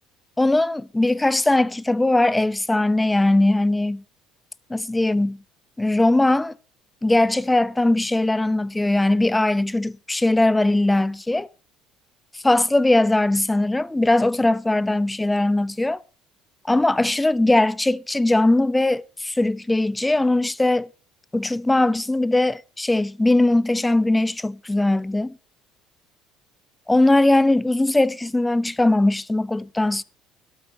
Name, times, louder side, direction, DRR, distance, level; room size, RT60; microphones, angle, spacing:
voice 1, 0.4-4.0 4.7-5.4 5.8-6.5 7.0-11.5 12.4-16.0 16.6-20.9 21.3-25.4 26.9-30.0, left 2 dB, 10° left, 0.6 m, -20 dB
12.5 x 8.4 x 6.0 m
supercardioid pair, 95°, 0 cm